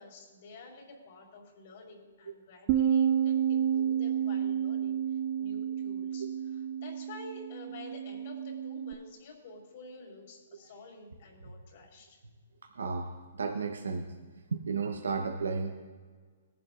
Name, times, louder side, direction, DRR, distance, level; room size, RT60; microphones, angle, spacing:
voice 1, 0.0-12.2, left 2 dB, 55° left, 0 dB, 3.8 m, -50 dB
Bass guitar, 2.7-8.9, right 9 dB, 35° right, 0.5 m, -30 dB
voice 2, 12.7-14.1 14.5-15.8, right 4 dB, 90° right, 3 dB, 1.0 m, -33 dB
19.0 x 11.0 x 2.5 m, 1.5 s
hypercardioid pair, 140°, 0 cm